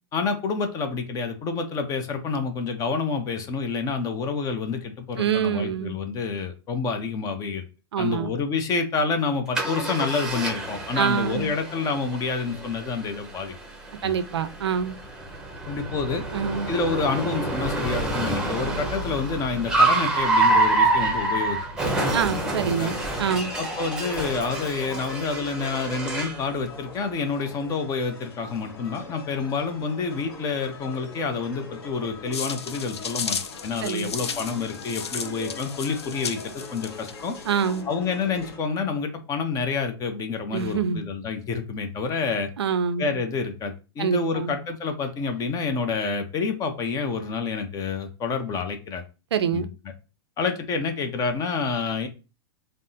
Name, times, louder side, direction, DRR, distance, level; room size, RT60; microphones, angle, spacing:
voice 1, 0.1-7.6 8.0-13.5 14.0-14.1 15.7-16.2 16.7-21.6 22.7-22.9 23.6-37.4 37.9-42.5 43.0-49.0 49.5-49.7 50.4-52.1, left 4 dB, 25° left, 7 dB, 0.6 m, -28 dB
voice 2, 5.2-5.9 7.9-8.3 10.9-11.5 14.0-15.0 16.3-16.7 22.1-23.5 33.8-34.1 37.5-37.8 40.5-41.0 42.6-43.2 44.0-44.6 49.3-49.7, right 7 dB, 75° right, 11 dB, 0.4 m, -25 dB
Car, 9.5-26.4, right 2 dB, 5° right, 0.8 m, -27 dB
sound 1, 22.5-38.6, left 3 dB, 65° left, 1.0 m, -42 dB
sound 2, 32.3-37.8, left 6 dB, 85° left, 0.4 m, -34 dB
3.4 x 2.0 x 2.7 m, 0.32 s
hypercardioid pair, 110°, 14 cm